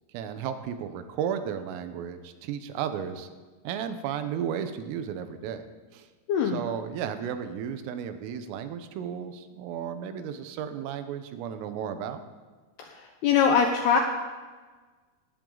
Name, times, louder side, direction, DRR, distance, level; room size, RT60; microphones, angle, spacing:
voice 1, 0.1-3.3 3.7-5.6 5.9-6.1 6.5-12.2, right 8 dB, 85° right, 9 dB, 3.6 m, -34 dB
voice 2, 6.3-6.6 12.8-14.0, left 7 dB, 75° left, 3 dB, 2.4 m, -23 dB
19.0 x 17.0 x 4.0 m, 1.4 s
omnidirectional pair, 5.9 m